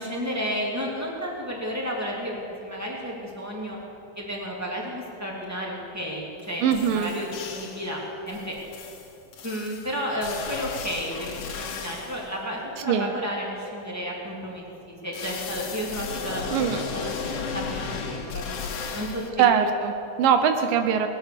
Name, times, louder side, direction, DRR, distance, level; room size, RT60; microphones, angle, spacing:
voice 1, 0.0-3.8 4.2-8.6 9.4-16.7 16.9-17.1 17.5-19.5, equal, 5° right, -3 dB, 2.0 m, -32 dB
sound 1, 6.4-6.5 6.7-7.9 8.3-12.3 15.1-19.3, left 6 dB, 90° left, 3.1 m, -35 dB
voice 2, 6.6-7.1 12.9-13.1 16.5-16.8 19.4-21.1, right 8 dB, 80° right, 7 dB, 2.4 m, -22 dB
20.5 x 9.0 x 6.8 m, 2.9 s
omnidirectional pair, 4.0 m